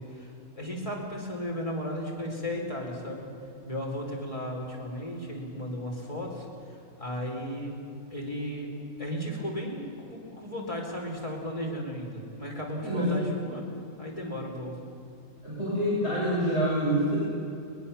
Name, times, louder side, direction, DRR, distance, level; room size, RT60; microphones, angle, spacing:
voice 1, 0.0-3.3 3.7-7.7 8.1-8.7 9.0-13.6 14.0-14.8, equal, 20° left, -1 dB, 4.4 m, -35 dB
voice 2, 15.4-17.2, equal, 50° left, -9 dB, 7.8 m, -26 dB
22.0 x 21.5 x 7.1 m, 2.6 s
omnidirectional pair, 1.5 m